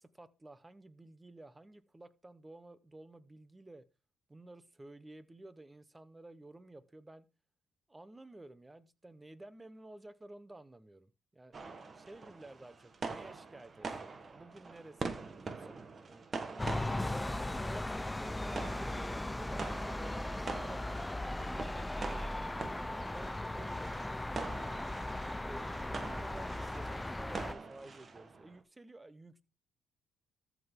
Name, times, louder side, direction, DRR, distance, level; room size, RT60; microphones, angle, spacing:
voice 1, 0.0-3.8 4.3-7.3 7.9-11.5 11.9-16.3 17.0-17.8 18.2-22.7 23.1-24.5 25.4-29.4, right 2 dB, 15° right, 0.9 m, -53 dB
sound 1, 11.5-28.6, right 4 dB, 40° right, 1.3 m, -45 dB
sound 2, 16.6-27.5, left 1 dB, 10° left, 0.4 m, -38 dB
13.5 x 6.0 x 3.6 m
cardioid pair, 90°, 0 cm